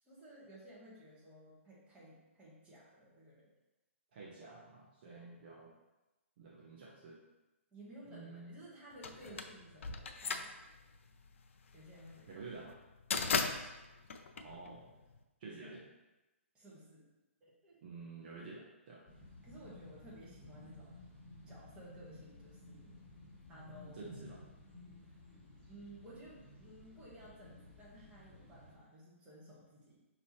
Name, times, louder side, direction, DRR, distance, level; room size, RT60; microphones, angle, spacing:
voice 1, 0.0-3.5 5.0-5.3 7.7-10.5 11.7-12.4 13.2-13.6 15.6-15.8 16.5-17.1 17.4-17.8 19.4-21.0 21.5-23.0 23.5-24.1 25.0-25.2 25.7-30.0, right 1 dB, 15° right, -7 dB, 1.3 m, -56 dB
voice 2, 4.1-5.7 6.4-7.2 8.1-8.6 9.3-9.4 12.3-12.7 14.3-14.9 15.4-15.8 17.8-19.0 23.9-24.4, right 3 dB, 45° right, -4 dB, 0.8 m, -50 dB
sound 1, 9.0-15.2, left 5 dB, 65° left, 0.4 m, -38 dB
sound 2, 19.1-28.7, left 2 dB, 15° left, 1.2 m, -55 dB
5.2 x 2.9 x 3.1 m, 1.1 s
hypercardioid pair, 140°, 7 cm